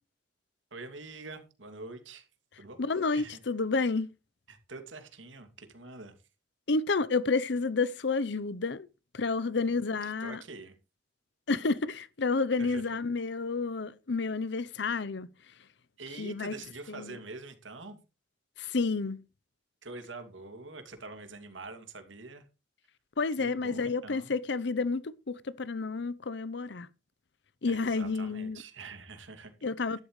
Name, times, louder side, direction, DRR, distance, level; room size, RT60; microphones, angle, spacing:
voice 1, 0.7-2.3 2.6-2.8 3.1-3.4 4.5-6.1 9.5-9.7 10.0-10.7 12.6-13.0 16.0-18.0 19.8-22.4 23.4-24.3 27.7-29.5, right 3 dB, 90° right, 2.6 m, -45 dB
voice 2, 2.8-4.1 6.7-8.9 9.1-10.4 11.5-15.3 16.2-16.5 16.9-17.2 18.6-19.2 23.2-26.9 27.6-28.6 29.6-30.0, left 4 dB, 65° left, 0.7 m, -30 dB
12.5 x 12.0 x 3.2 m
head